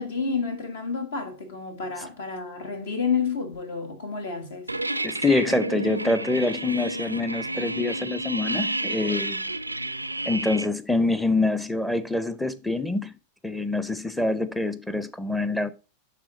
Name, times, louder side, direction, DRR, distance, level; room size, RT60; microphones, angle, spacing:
voice 1, 0.0-4.7, left 5 dB, 60° left, 1.4 m, -30 dB
Squeaky Iron Door, 4.7-10.7, right 2 dB, 85° right, 0.3 m, -31 dB
voice 2, 5.0-9.5 10.3-13.2 13.4-15.7, left 2 dB, 5° left, 0.6 m, -25 dB
11.0 x 3.7 x 4.0 m
figure-of-eight pair, 90°, 0 cm